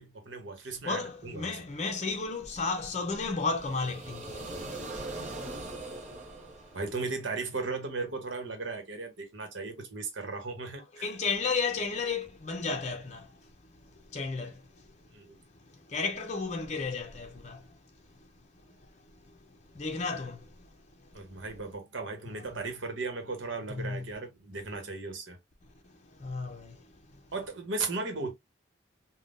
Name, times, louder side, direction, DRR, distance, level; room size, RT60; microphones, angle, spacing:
voice 1, 0.0-1.6 6.7-11.1 15.1-15.4 21.1-25.4 27.3-28.3, right 3 dB, 75° right, 1.0 m, -36 dB
voice 2, 0.8-4.9 5.3-6.0 11.0-13.5 14.1-14.9 15.7-17.8 18.2-18.3 18.7-18.8 19.3-19.4 19.7-20.7 21.1-21.2 23.7-24.1 26.1-27.2, left 4 dB, 35° left, 0.6 m, -34 dB
sound 1, 3.4-7.4, right 2 dB, 40° right, 0.8 m, -41 dB
3.6 x 2.2 x 2.5 m
head